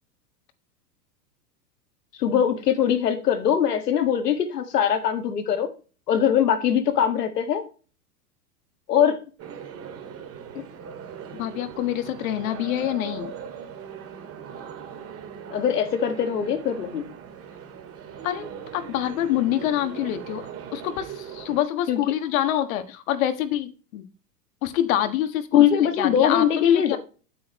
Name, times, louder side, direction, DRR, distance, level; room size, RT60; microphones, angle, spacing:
voice 1, 2.2-5.7 6.1-7.6 8.9-9.2 10.5-10.6 15.5-17.0 21.9-22.0 25.5-27.0, left 9 dB, 75° left, 2.0 m, -21 dB
sound 1, 9.4-21.6, right 8 dB, 30° right, 2.0 m, -40 dB
voice 2, 11.3-13.4 18.2-20.4 20.7-24.0 24.6-27.0, left 12 dB, 55° left, 1.6 m, -26 dB
8.7 x 8.4 x 3.1 m
hypercardioid pair, 105°, 48 cm